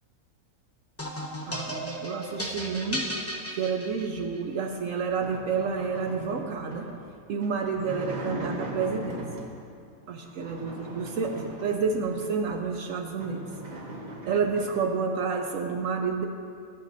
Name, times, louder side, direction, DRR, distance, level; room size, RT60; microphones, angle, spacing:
sound 1, 1.0-4.4, equal, 10° left, 0.7 m, -34 dB
voice 1, 1.5-3.1 3.5-6.9 7.3-9.2 10.1-13.4 14.3-16.2, right 5 dB, 65° right, 4 dB, 0.8 m, -29 dB
sound 2, 4.5-9.7 10.2-12.3 12.8-12.9 13.1-14.9, right 1 dB, 35° right, 0.8 m, -40 dB
14.0 x 8.2 x 2.6 m, 2.4 s
omnidirectional pair, 1.7 m